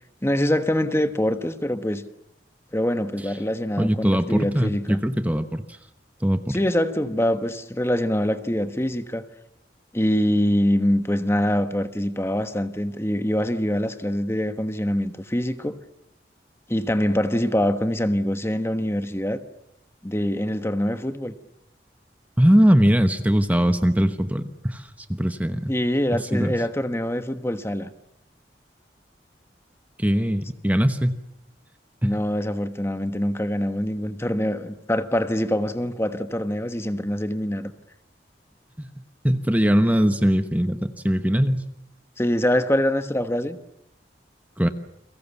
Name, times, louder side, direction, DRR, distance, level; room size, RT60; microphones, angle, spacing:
voice 1, 0.2-2.0 2.7-5.0 6.5-9.3 9.9-15.8 16.7-19.4 20.0-21.3 25.7-27.9 32.0-37.7 42.2-43.6, equal, 15° left, 1.3 m, -24 dB
voice 2, 3.8-5.8 6.2-6.6 22.4-25.7 26.3-26.5 30.0-31.2 32.0-32.2 38.8-38.9 39.2-41.7 44.6-44.7, equal, 10° right, 1.1 m, -21 dB
30.0 x 23.5 x 7.2 m
head